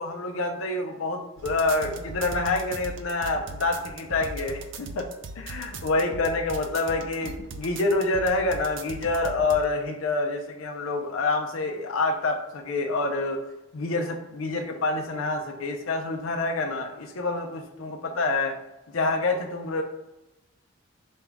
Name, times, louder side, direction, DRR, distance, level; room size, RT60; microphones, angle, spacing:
voice 1, 0.0-5.1 5.4-13.4 13.7-18.6 18.9-19.8, left 2 dB, 85° left, 4 dB, 0.5 m, -27 dB
sound 1, 1.4-9.6, right 3 dB, 65° right, 0.4 m, -39 dB
5.3 x 2.3 x 3.4 m, 0.98 s
head